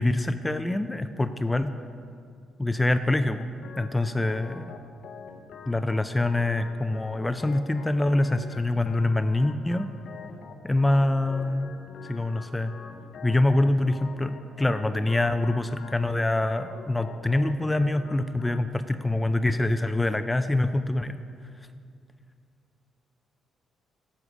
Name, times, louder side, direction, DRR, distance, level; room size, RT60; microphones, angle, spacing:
voice 1, 0.0-1.8 2.6-3.5 3.8-4.6 5.7-9.9 10.6-11.7 12.0-12.7 13.2-21.2, left 2 dB, 15° left, 10 dB, 0.3 m, -25 dB
Organ, 3.6-18.6, left 5 dB, 65° left, 0.6 m, -45 dB
9.7 x 6.3 x 5.0 m, 2.3 s
cardioid pair, 90°, 0 cm